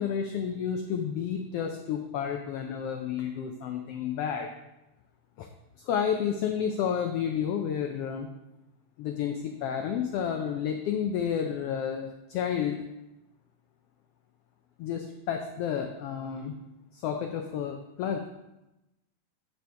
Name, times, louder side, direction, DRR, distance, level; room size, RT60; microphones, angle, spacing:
voice 1, 0.0-4.5 5.4-5.5 5.8-8.3 9.0-12.8 14.8-16.5 16.9-18.3, left 8 dB, 85° left, 4 dB, 1.3 m, -31 dB
7.8 x 6.9 x 3.4 m, 0.94 s
omnidirectional pair, 3.3 m